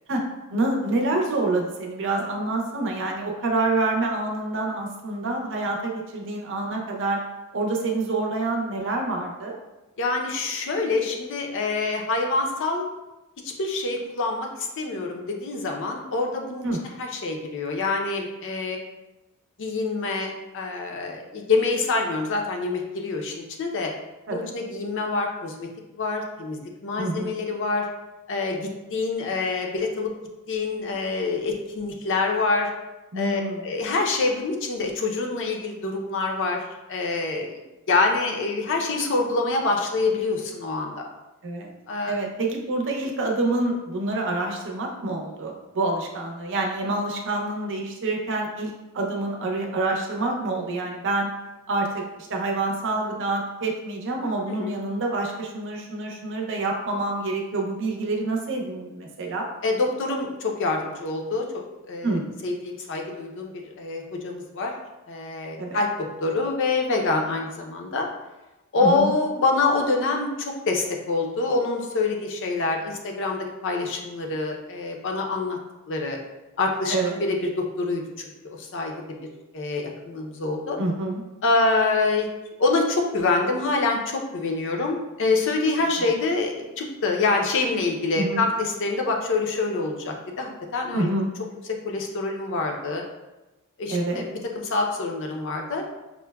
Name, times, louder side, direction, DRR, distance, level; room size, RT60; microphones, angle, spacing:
voice 1, 0.5-7.2 7.5-9.5 16.6-16.8 24.3-24.5 27.0-27.3 33.1-33.6 41.4-41.7 42.1-51.3 51.7-59.5 62.0-62.3 65.6-65.8 68.8-69.1 76.9-77.1 80.8-81.2 86.0-86.1 88.2-88.4 90.9-91.3 93.9-94.3, right 2 dB, 55° right, 0 dB, 0.6 m, -27 dB
voice 2, 10.0-12.8 13.4-16.6 17.0-18.8 19.6-23.3 23.6-23.9 24.3-25.7 26.0-27.9 28.3-30.1 30.5-32.7 33.1-36.6 36.9-37.5 37.9-41.1 41.9-42.1 54.5-54.7 59.6-61.5 61.9-62.2 62.4-64.7 65.1-65.9 66.2-68.1 68.7-75.6 75.9-76.2 76.6-78.9 79.5-80.8 81.4-82.3 82.6-91.1 91.8-93.0 93.8-95.8, left 3 dB, 55° left, 2 dB, 0.5 m, -26 dB
5.7 x 2.1 x 2.2 m, 1.0 s
head